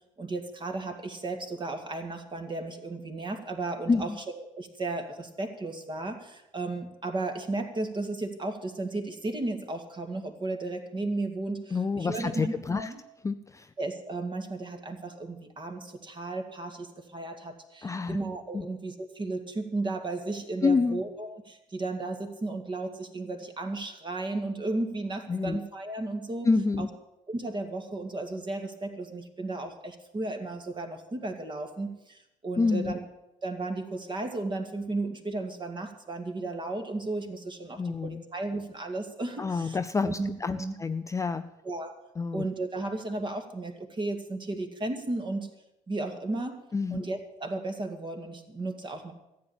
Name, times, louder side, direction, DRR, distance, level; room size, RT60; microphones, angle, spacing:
voice 1, 0.2-13.0 13.8-26.5 26.8-26.9 27.3-33.0 33.4-39.8 40.0-40.8 41.6-42.0 42.3-45.5 45.9-46.6 46.9-49.1, right 2 dB, 30° right, 5 dB, 2.4 m, -34 dB
voice 2, 3.9-4.2 11.7-12.9 13.2-13.7 17.8-18.2 18.5-18.6 20.6-21.0 25.3-25.6 26.4-26.9 32.6-32.9 37.8-38.2 39.4-41.5 42.2-42.4 46.7-47.0, left 4 dB, 20° left, 10 dB, 0.6 m, -28 dB
14.5 x 8.6 x 8.8 m, 0.89 s
hypercardioid pair, 60°, 17 cm